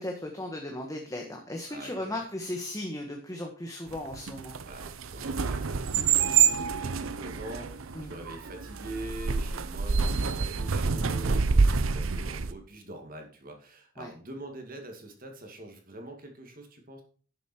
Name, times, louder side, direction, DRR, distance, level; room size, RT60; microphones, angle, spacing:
voice 1, 0.0-4.6 7.9-8.1 14.0-14.1, left 1 dB, 15° left, 2 dB, 1.4 m, -36 dB
voice 2, 1.7-2.2 4.7-17.0, right 1 dB, 45° right, 3 dB, 2.2 m, -44 dB
sound 1, 3.9-12.5, right 5 dB, 85° right, 0.7 m, -27 dB
11.5 x 7.3 x 4.4 m, 0.43 s
head